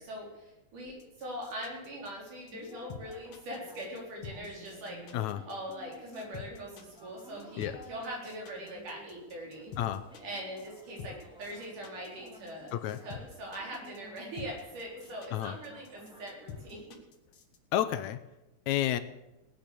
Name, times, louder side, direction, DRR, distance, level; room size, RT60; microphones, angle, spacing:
voice 1, 0.0-5.0 5.4-9.7 10.2-17.0, equal, 85° right, -2 dB, 5.6 m, -42 dB
sound 1, 0.9-17.6, left 7 dB, 55° left, 2.4 m, -47 dB
sound 2, 2.5-16.8, equal, ahead, 1.9 m, -54 dB
voice 2, 17.7-18.2 18.7-19.0, left 12 dB, 80° left, 11 dB, 2.0 m, -30 dB
18.5 x 9.1 x 6.8 m, 0.97 s
omnidirectional pair, 3.5 m